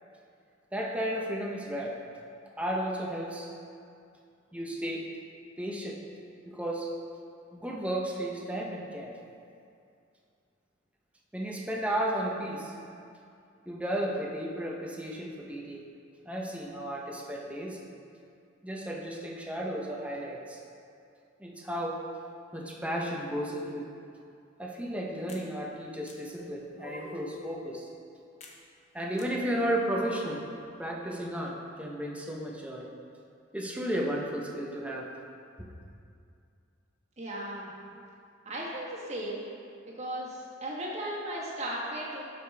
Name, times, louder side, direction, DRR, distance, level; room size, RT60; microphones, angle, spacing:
voice 1, 0.7-2.0 2.6-3.5 4.5-5.1 5.6-6.0 6.5-6.9 7.5-9.1 11.3-12.8 13.7-15.8 16.3-17.8 18.6-20.6 21.4-22.0 22.5-23.9 24.6-27.9 28.9-30.4 30.8-32.9 33.5-35.1 35.6-35.7, right 1 dB, 5° right, -2 dB, 0.8 m, -33 dB
sound 1, 25.3-25.5 26.1-26.2 26.8-27.3 28.4-28.6 29.2-29.3 29.9-30.4, left 1 dB, 35° left, 0.7 m, -45 dB
voice 2, 37.2-37.7 38.4-39.4 39.9-42.3, right 1 dB, 35° right, -5 dB, 1.5 m, -36 dB
11.5 x 5.0 x 3.4 m, 2.5 s
head